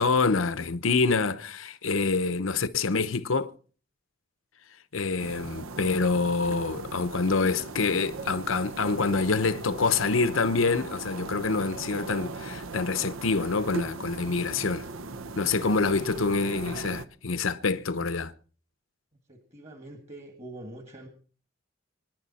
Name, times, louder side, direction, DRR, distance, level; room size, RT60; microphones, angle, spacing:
voice 1, 0.0-3.5 4.9-14.9 15.4-18.3, left 4 dB, 85° left, 0.8 m, -26 dB
sound 1, 5.2-17.1, right 3 dB, 90° right, 0.9 m, -38 dB
voice 2, 19.3-21.1, right 1 dB, 35° right, 2.0 m, -44 dB
25.5 x 10.5 x 4.2 m
head